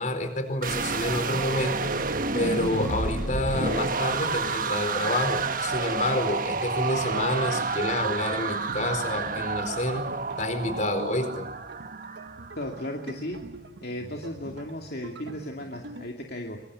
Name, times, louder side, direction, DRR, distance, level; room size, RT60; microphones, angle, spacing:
voice 1, 0.0-1.9 2.3-10.1 10.4-11.4, left 1 dB, 45° left, 8 dB, 4.6 m, -28 dB
sound 1, 0.6-12.7, right 4 dB, 50° right, 1.3 m, -30 dB
sound 2, 1.3-16.1, right 2 dB, 80° right, 1.5 m, -44 dB
voice 2, 12.6-13.4 13.8-16.6, left 1 dB, 60° left, 1 dB, 2.7 m, -35 dB
25.0 x 24.5 x 8.7 m, 0.88 s
head